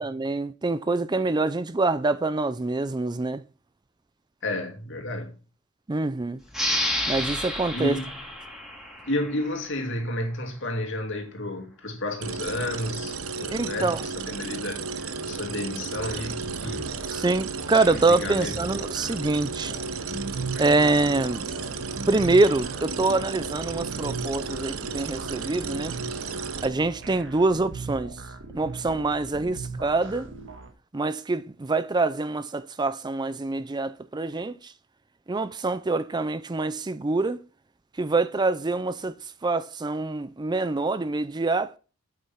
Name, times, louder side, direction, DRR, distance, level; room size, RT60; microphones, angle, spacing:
voice 1, 0.0-3.4 5.9-6.4 7.1-8.0 13.5-14.0 17.1-19.7 20.6-21.5 22.1-26.0 26.6-28.2 28.5-30.3 30.9-34.7 35.3-37.4 38.0-39.2 39.4-41.8, right 3 dB, 20° right, 0.4 m, -25 dB
voice 2, 4.4-5.4 7.7-8.1 9.0-16.9 18.1-18.6, left 1 dB, 60° left, 2.5 m, -31 dB
sound 1, 6.5-9.8, left 1 dB, ahead, 4.0 m, -30 dB
sound 2, 12.2-26.7, right 5 dB, 80° right, 0.9 m, -34 dB
sound 3, 15.9-30.7, right 3 dB, 60° right, 1.7 m, -39 dB
8.4 x 8.1 x 5.8 m
head